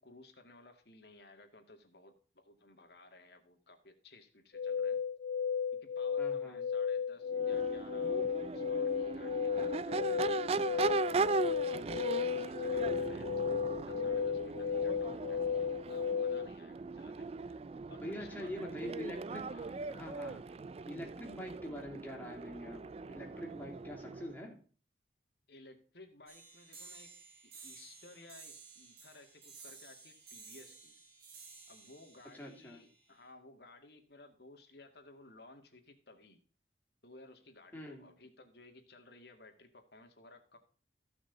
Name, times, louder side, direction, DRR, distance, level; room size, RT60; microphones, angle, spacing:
voice 1, 0.0-5.0 5.7-11.1 11.6-15.4 15.7-17.6 17.9-18.8 19.5-19.9 25.5-31.0 31.7-36.4 37.0-40.6, left 2 dB, 65° left, 5 dB, 2.2 m, -57 dB
sound 1, 4.5-16.5, left 7 dB, 85° left, 0.5 m, -34 dB
voice 2, 6.2-6.6 18.0-19.6 19.9-20.5 20.9-24.6 32.3-32.8 37.7-38.0, equal, 10° left, -1 dB, 3.0 m, -44 dB
Crowd / Race car auto racing / Accelerating revving vroom, 7.3-24.4, right 4 dB, 35° right, 0.3 m, -39 dB
sound 2, 26.3-33.3, right 4 dB, 60° right, 4.8 m, -55 dB
15.5 x 6.1 x 4.0 m, 0.41 s
head